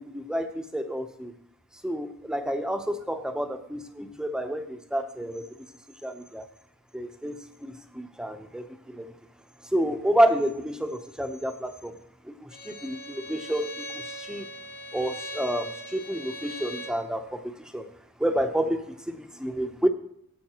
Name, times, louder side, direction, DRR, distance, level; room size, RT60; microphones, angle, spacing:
voice 1, 0.0-1.3 1.8-5.5 6.0-6.5 6.9-9.1 9.7-12.0 12.2-14.5 14.9-17.9 18.2-19.9, equal, 5° right, 6 dB, 0.7 m, -29 dB
Bowed string instrument, 12.5-17.0, equal, 45° left, 1.1 m, -40 dB
14.5 x 8.2 x 2.9 m, 0.73 s
head